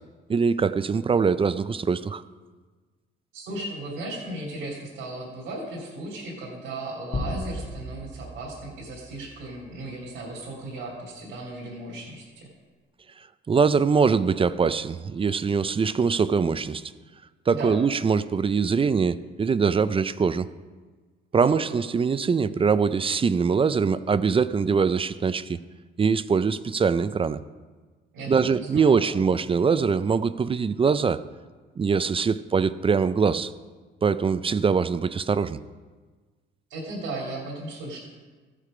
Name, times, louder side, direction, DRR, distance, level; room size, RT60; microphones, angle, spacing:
voice 1, 0.3-2.2 13.5-16.8 17.5-20.5 21.3-25.6 26.0-27.4 28.3-31.2 31.8-33.5 34.0-35.6, right 5 dB, 25° right, 14 dB, 0.4 m, -23 dB
voice 2, 3.3-12.5 17.5-17.8 21.3-21.6 28.1-29.2 36.7-38.0, right 2 dB, 80° right, -6 dB, 2.8 m, -36 dB
sound 1, 7.1-9.7, left 1 dB, 60° left, 2.4 m, -35 dB
15.0 x 6.6 x 5.0 m, 1.4 s
cardioid pair, 90°, 20 cm